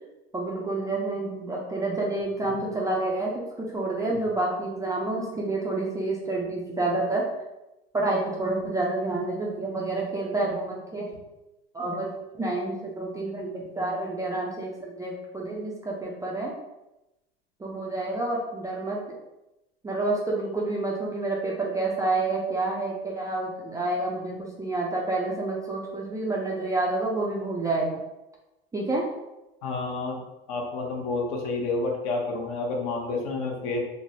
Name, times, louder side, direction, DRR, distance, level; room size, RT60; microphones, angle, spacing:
voice 1, 0.3-7.3 7.9-11.1 11.7-16.5 17.6-19.0 19.8-28.0 28.7-29.1, right 2 dB, 10° right, -3 dB, 0.3 m, -29 dB
voice 2, 29.6-30.2 30.5-33.8, left 3 dB, 60° left, 0 dB, 0.9 m, -29 dB
3.2 x 2.1 x 2.7 m, 0.97 s
hypercardioid pair, 100°, 32 cm